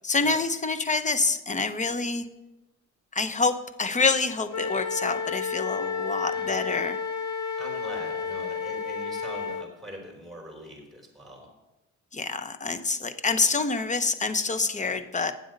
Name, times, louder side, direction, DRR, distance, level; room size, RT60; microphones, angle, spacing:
voice 1, 0.0-2.3 3.1-7.0 12.1-15.3, left 4 dB, 25° left, 11 dB, 0.7 m, -27 dB
Wind instrument woodwind instrument, 4.5-9.7, left 5 dB, 55° left, 1.0 m, -31 dB
voice 2, 7.6-11.5, equal, ahead, -1 dB, 3.8 m, -42 dB
9.3 x 7.7 x 5.3 m, 1.0 s
cardioid pair, 90°, 30 cm